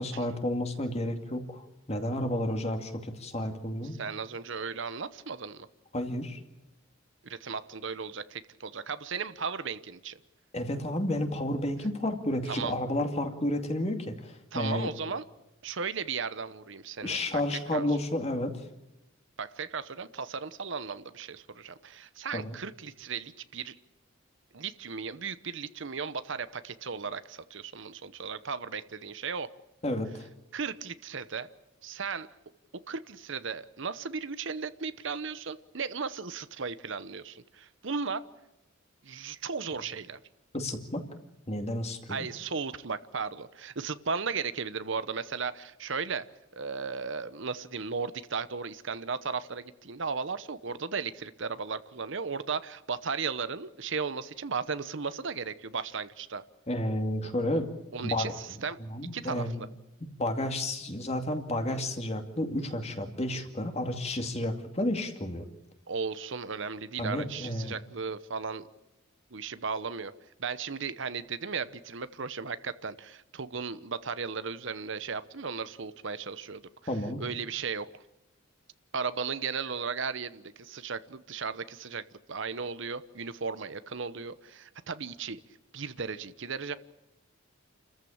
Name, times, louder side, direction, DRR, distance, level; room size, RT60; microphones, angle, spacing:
voice 1, 0.0-4.0 5.9-6.4 10.5-14.9 17.0-18.6 22.3-22.5 29.8-30.3 40.5-41.0 41.5-42.3 56.7-57.7 58.0-58.3 58.8-59.5 60.2-65.5 67.0-67.8 76.9-77.2, left 1 dB, 30° left, 5 dB, 2.4 m, -31 dB
voice 2, 3.8-5.7 7.2-10.2 12.5-12.7 14.5-15.2 15.6-17.2 17.5-17.9 19.4-23.8 24.5-29.5 30.5-31.5 31.8-32.3 32.9-38.2 39.0-40.2 42.1-46.3 46.5-56.4 57.9-58.8 59.1-59.7 65.9-68.7 69.3-70.1 70.4-76.6 77.2-78.0 78.9-82.0 82.3-85.4 85.7-86.8, right 5 dB, 60° right, 13 dB, 0.9 m, -36 dB
29.5 x 14.5 x 8.7 m, 0.97 s
head